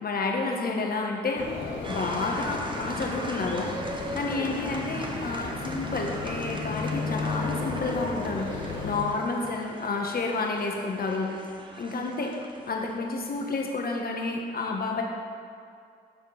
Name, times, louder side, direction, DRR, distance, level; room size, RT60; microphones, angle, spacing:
voice 1, 0.0-1.5 1.9-3.7 4.1-11.3 11.8-12.3 12.7-15.0, left 3 dB, 55° left, 1 dB, 1.3 m, -30 dB
sound 1, 1.4-9.0, left 4 dB, 80° left, 1.4 m, -34 dB
sound 2, 1.8-13.6, right 1 dB, 25° right, 1.1 m, -40 dB
9.4 x 3.7 x 6.3 m, 2.3 s
supercardioid pair, 50°, 19 cm